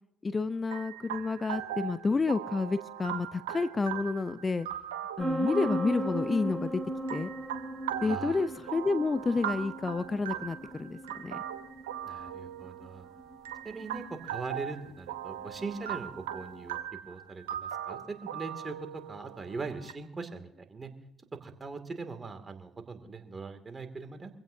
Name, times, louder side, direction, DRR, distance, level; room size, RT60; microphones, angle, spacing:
voice 1, 0.2-4.7 5.2-6.8 7.1-7.3 8.0-11.4, left 3 dB, 30° left, 13 dB, 0.7 m, -30 dB
sound 1, 0.7-19.9, right 10 dB, 85° right, 1.0 m, -40 dB
sound 2, 5.2-16.7, right 1 dB, 10° right, 6.2 m, -38 dB
voice 2, 8.0-8.4 12.0-13.1 13.6-20.9 21.4-24.4, right 4 dB, 30° right, 7 dB, 2.5 m, -41 dB
25.0 x 16.0 x 2.8 m, 0.76 s
hypercardioid pair, 50°, 0 cm